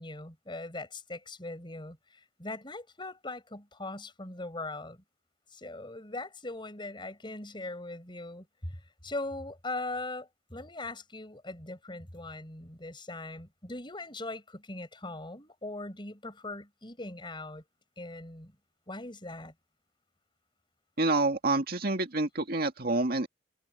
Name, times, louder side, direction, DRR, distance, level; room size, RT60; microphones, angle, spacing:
voice 1, 0.0-5.0 5.5-17.6 18.0-18.5 18.9-19.5, left 2 dB, 25° left, 5.5 m, -40 dB
voice 2, 21.0-23.3, right 2 dB, 50° right, 2.1 m, -28 dB
head